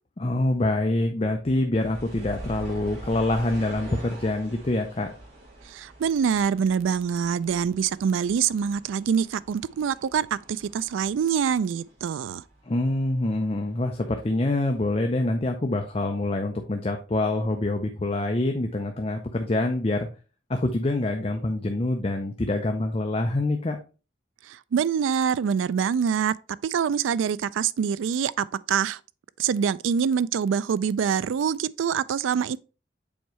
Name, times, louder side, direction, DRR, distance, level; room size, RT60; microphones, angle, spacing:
voice 1, 0.2-5.1 12.7-20.1 20.5-23.8, left 2 dB, 30° left, 0.5 m, -26 dB
sound 1, 1.8-13.0 13.2-14.3 14.8-14.9, right 1 dB, 50° right, 2.6 m, -44 dB
voice 2, 5.7-12.4 24.4-26.3 26.6-29.0 29.4-32.6, right 7 dB, 85° right, 0.3 m, -25 dB
7.2 x 4.6 x 3.1 m
head